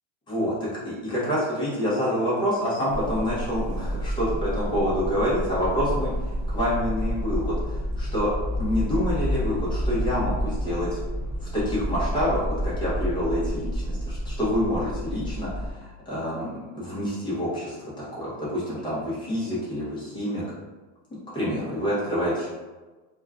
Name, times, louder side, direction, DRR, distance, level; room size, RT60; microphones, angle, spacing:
voice 1, 0.3-8.3 8.6-11.0 11.4-20.5 21.3-22.5, equal, 10° left, -8 dB, 0.6 m, -27 dB
sound 1, 2.9-15.7, equal, 5° right, 1.1 m, -29 dB
2.3 x 2.1 x 3.4 m, 1.2 s
supercardioid pair, 175°, 38 cm